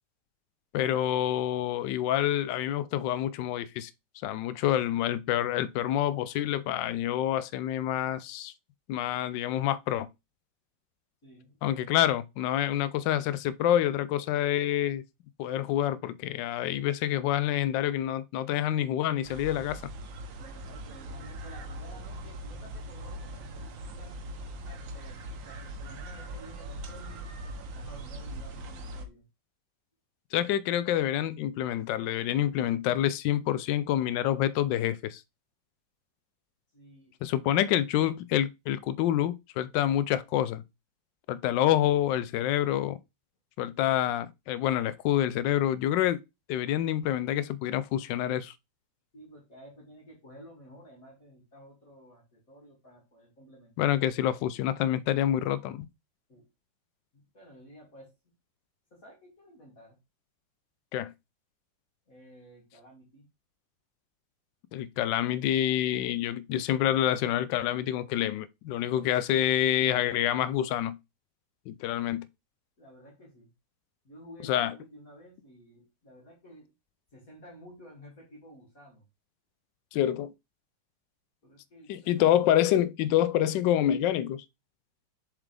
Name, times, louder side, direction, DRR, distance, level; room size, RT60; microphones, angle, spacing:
voice 1, 0.7-3.9 4.2-8.5 8.9-10.1 11.6-15.0 15.4-19.8 30.3-35.2 37.2-40.6 41.3-43.0 43.6-46.2 46.5-48.5 53.8-55.9 60.9-61.1 64.7-71.0 71.7-72.2 74.4-74.7 79.9-80.3 81.9-84.4, left 12 dB, 80° left, 1.2 m, -27 dB
voice 2, 11.2-11.6 20.4-24.2 24.6-27.3 27.7-29.3 36.7-37.2 43.7-43.9 49.1-54.0 56.3-56.5 57.1-58.1 58.9-60.0 62.1-63.3 72.0-72.1 72.8-73.5 74.0-76.7 77.1-79.0 81.4-82.4, equal, 50° left, 2.8 m, -52 dB
sound 1, 19.2-29.1, right 1 dB, 90° right, 1.7 m, -41 dB
7.3 x 4.8 x 3.3 m
omnidirectional pair, 2.0 m